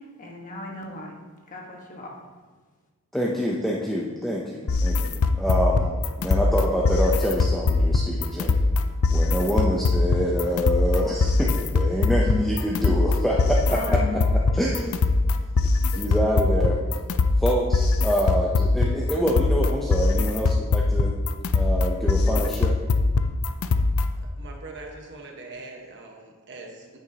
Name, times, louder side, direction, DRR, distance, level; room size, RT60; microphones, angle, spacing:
voice 1, 0.2-1.2 1.5-2.2 13.5-14.3, left 2 dB, 40° left, -1 dB, 1.4 m, -36 dB
voice 2, 3.1-5.9 6.2-8.6 9.1-14.0 14.5-15.0 15.9-16.8 17.4-21.1 21.5-22.8, equal, ahead, -4 dB, 0.7 m, -26 dB
sound 1, 4.7-24.2, left 3 dB, 70° left, 0.5 m, -22 dB
voice 3, 24.4-27.0, right 3 dB, 55° right, 1 dB, 1.4 m, -42 dB
10.0 x 9.0 x 2.9 m, 1.4 s
head